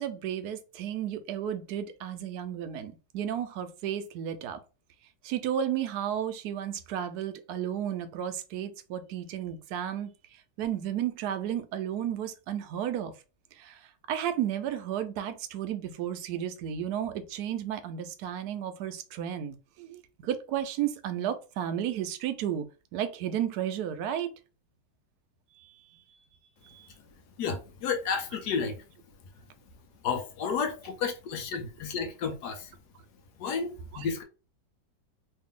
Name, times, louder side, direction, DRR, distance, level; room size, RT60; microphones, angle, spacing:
voice 1, 0.0-4.6 5.2-13.1 13.5-22.7 22.9-24.3 25.5-26.2 26.6-26.9 33.9-34.1, right 10 dB, 70° right, 1.0 m, -33 dB
voice 2, 27.4-28.8 30.0-32.7 33.4-34.2, left 6 dB, 75° left, 1.2 m, -32 dB
3.2 x 2.7 x 3.6 m
omnidirectional pair, 1.9 m